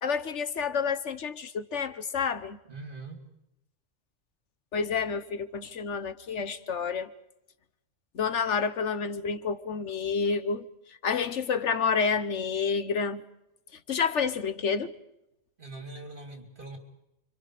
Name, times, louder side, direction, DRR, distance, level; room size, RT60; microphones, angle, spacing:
voice 1, 0.0-2.6 4.7-7.1 8.1-10.7 11.0-13.2 13.9-14.9, left 5 dB, 80° left, 1.5 m, -29 dB
voice 2, 2.7-3.2 15.6-16.8, right 2 dB, 45° right, 3.8 m, -42 dB
30.0 x 25.5 x 5.1 m
omnidirectional pair, 1.2 m